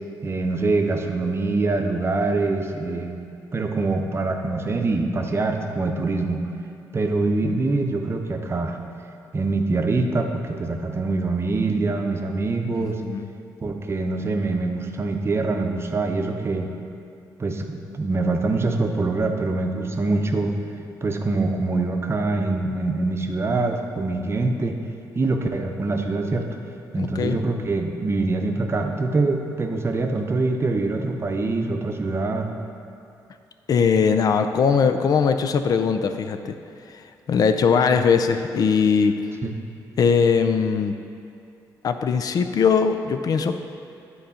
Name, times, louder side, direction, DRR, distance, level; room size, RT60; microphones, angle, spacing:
voice 1, 0.2-3.1 3.5-6.4 6.9-8.8 9.3-13.0 13.6-16.7 17.4-20.5 21.0-24.8 25.1-26.5 26.9-32.5 39.4-39.5, right 3 dB, 35° right, 4 dB, 0.7 m, -24 dB
voice 2, 27.0-27.4 33.7-36.5 37.3-39.1 40.0-40.9 41.8-43.6, left 6 dB, 55° left, 8 dB, 0.4 m, -20 dB
8.4 x 3.9 x 5.6 m, 2.5 s
cardioid pair, 75°, 8 cm